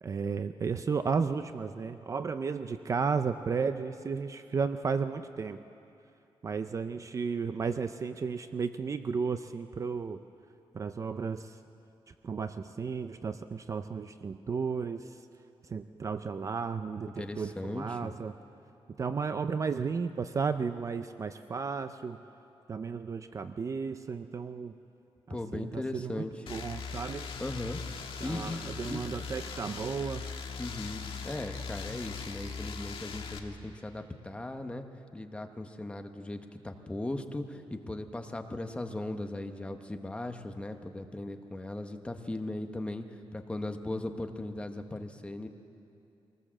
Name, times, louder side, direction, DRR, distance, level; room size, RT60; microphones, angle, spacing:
voice 1, 0.0-5.6 6.4-10.2 10.7-11.6 12.2-15.2 15.7-18.3 19.0-22.2 22.7-24.7 25.3-26.2 26.5-27.3 28.2-30.2, right 5 dB, 30° right, 10 dB, 0.5 m, -33 dB
voice 2, 17.2-18.1 25.3-26.4 27.4-27.8 28.2-29.0 30.6-34.9 35.1-45.5, left 2 dB, 10° left, 5 dB, 1.0 m, -38 dB
sound 1, 26.5-33.4, left 5 dB, 65° left, 1.5 m, -40 dB
23.5 x 18.5 x 7.5 m, 2.7 s
wide cardioid pair, 175°, 10 cm